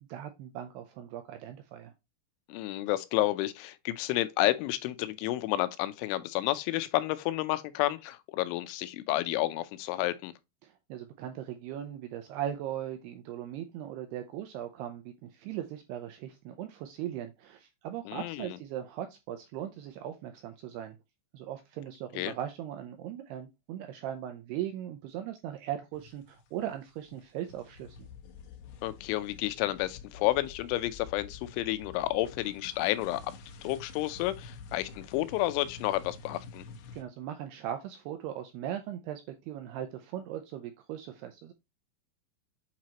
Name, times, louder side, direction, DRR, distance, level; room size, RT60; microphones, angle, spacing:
voice 1, 0.1-1.9 10.6-21.0 21.3-28.0 36.9-41.5, right 11 dB, 85° right, 2.3 m, -39 dB
voice 2, 2.5-10.3 18.1-18.6 22.2-22.3 28.8-33.2 33.6-36.6, left 16 dB, 85° left, 3.1 m, -30 dB
sound 1, 25.9-26.7 27.0-37.0, left 5 dB, 70° left, 2.5 m, -49 dB
8.4 x 4.4 x 2.8 m
omnidirectional pair, 5.5 m